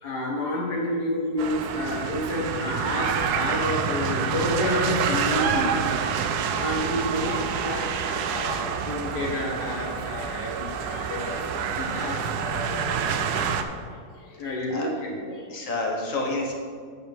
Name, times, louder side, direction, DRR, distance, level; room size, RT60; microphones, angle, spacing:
voice 1, 0.0-5.9 6.6-15.5, left 1 dB, 85° left, -3 dB, 2.3 m, -30 dB
sound 1, 1.4-13.6, right 7 dB, 90° right, 1.2 m, -27 dB
voice 2, 15.3-16.5, left 2 dB, 55° left, -1 dB, 1.6 m, -29 dB
8.5 x 8.4 x 3.5 m, 2.1 s
omnidirectional pair, 1.7 m